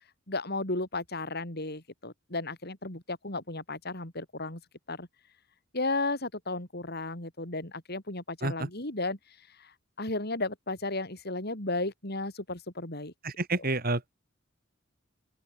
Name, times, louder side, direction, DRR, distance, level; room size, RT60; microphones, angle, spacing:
voice 1, 0.3-4.6 4.9-5.1 5.7-9.2 9.6-13.1, left 2 dB, 50° left, 5.3 m, -34 dB
voice 2, 13.2-14.1, right 2 dB, 45° right, 3.1 m, -29 dB
open air
head